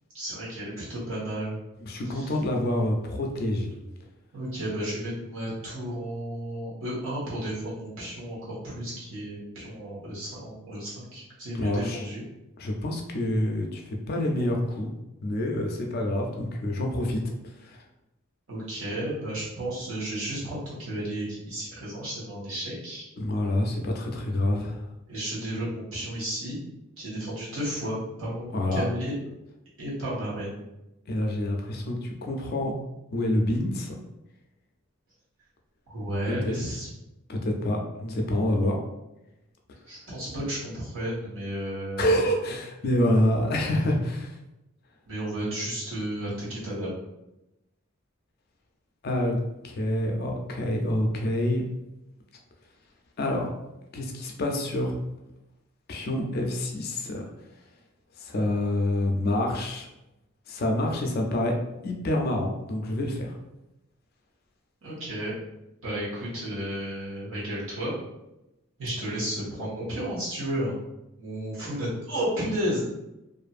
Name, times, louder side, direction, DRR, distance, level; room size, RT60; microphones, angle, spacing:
voice 1, 0.1-1.6 2.0-2.3 4.3-12.2 18.5-23.0 25.1-26.6 27.0-29.1 29.8-30.6 35.9-36.9 39.9-42.1 45.1-46.9 64.8-65.3 65.8-67.9 68.8-70.7 71.2-72.8, right 1 dB, 70° right, -8 dB, 1.2 m, -33 dB
voice 2, 1.9-3.7 11.6-12.0 12.6-14.9 15.2-17.2 17.6-17.8 23.2-24.8 28.5-28.8 31.1-32.7 33.1-33.9 36.3-36.5 37.3-38.8 42.0-44.3 49.0-49.4 49.6-51.6 53.2-53.5 53.9-54.9 55.9-57.2 58.2-59.9 60.5-61.5 61.8-63.3, left 1 dB, 45° left, 1 dB, 0.4 m, -27 dB
2.5 x 2.5 x 2.4 m, 0.93 s
head